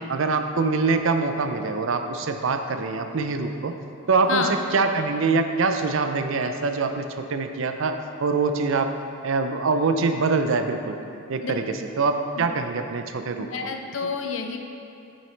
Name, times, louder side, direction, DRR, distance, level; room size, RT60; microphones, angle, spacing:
voice 1, 0.1-3.7 4.1-9.0 9.2-11.0 11.3-13.5, right 4 dB, 60° right, 7 dB, 0.5 m, -24 dB
voice 2, 13.3-14.6, left 4 dB, 60° left, 4 dB, 0.5 m, -29 dB
8.5 x 7.1 x 3.2 m, 2.6 s
head